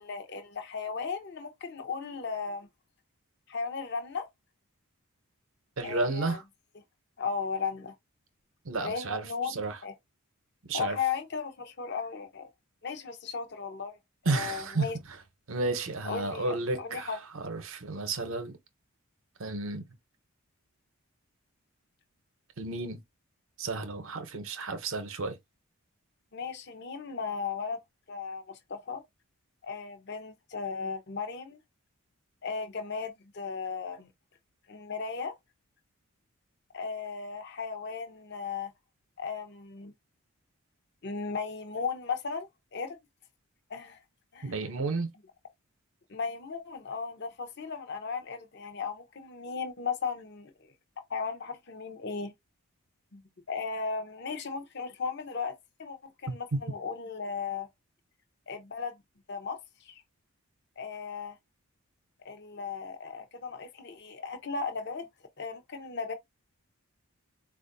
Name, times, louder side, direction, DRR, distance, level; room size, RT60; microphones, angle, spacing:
voice 1, 0.0-2.7 3.5-4.3 5.8-6.4 7.2-7.9 8.8-9.9 10.7-12.5 12.8-14.0 14.3-15.0 16.0-17.2 26.3-27.8 28.1-29.0 29.6-31.6 32.4-34.1 34.7-35.3 36.7-38.7 39.2-39.9 41.0-43.0 43.7-44.0 44.3-44.5 46.1-50.5 51.1-52.3 53.1-53.2 53.5-57.7 58.5-58.9 59.3-59.6 59.8-60.0 60.8-61.3 62.2-65.1 65.4-66.1, left 5 dB, 50° left, 0.7 m, -36 dB
voice 2, 5.8-6.4 8.6-9.8 10.7-11.0 14.3-14.8 15.5-18.5 19.4-19.8 22.6-23.0 23.6-25.4 44.4-45.1 56.3-56.4, right 3 dB, 65° right, 0.7 m, -32 dB
4.3 x 2.4 x 2.6 m
head